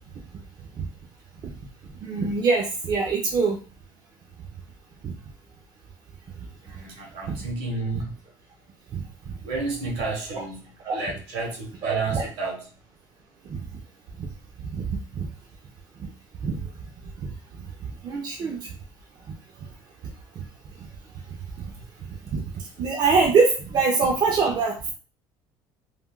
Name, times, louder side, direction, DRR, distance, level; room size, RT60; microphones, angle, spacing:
voice 1, 2.0-3.6 5.0-5.1 7.3-7.4 7.9-8.0 8.9-9.3 10.3-10.4 10.8-11.0 11.8-12.3 13.5-13.6 14.7-15.3 16.4-16.6 17.8-18.7 20.4-20.5 21.6-21.7 22.3-22.4 22.8-24.7, right 4 dB, 45° right, 0 dB, 0.6 m, -24 dB
voice 2, 6.6-8.1 9.4-10.6 10.9-12.6, right 3 dB, 70° right, 0 dB, 1.1 m, -30 dB
3.4 x 2.3 x 2.3 m, 0.37 s
supercardioid pair, 100°, 10 cm